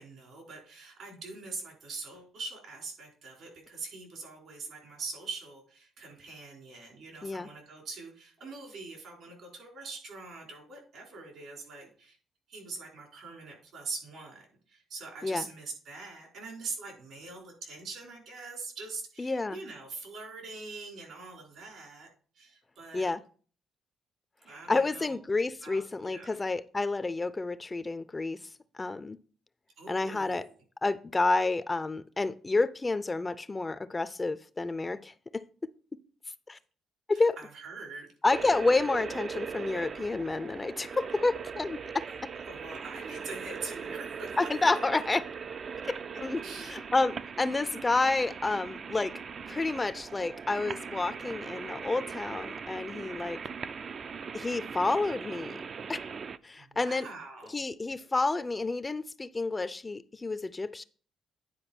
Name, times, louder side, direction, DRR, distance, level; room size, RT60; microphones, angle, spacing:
voice 1, 0.0-12.2 12.5-22.1 22.3-23.1 24.4-25.2 25.6-26.4 29.8-30.5 37.1-38.1 42.1-42.2 42.4-44.4 45.8-45.9 46.4-46.8 56.5-57.6, right 3 dB, 75° right, 4.4 m, -43 dB
voice 2, 19.2-19.6 22.9-23.2 24.7-28.4 28.8-29.2 29.9-30.4 30.8-35.4 36.5-36.6 37.1-37.4 38.2-42.0 44.4-45.2 46.2-49.1 49.5-53.4 54.3-55.6 55.9-56.0 56.4-57.1 57.5-60.8, left 3 dB, 25° left, 0.4 m, -29 dB
sound 1, 38.3-56.4, right 6 dB, 50° right, 0.4 m, -40 dB
9.9 x 4.6 x 4.4 m
cardioid pair, 90°, 0 cm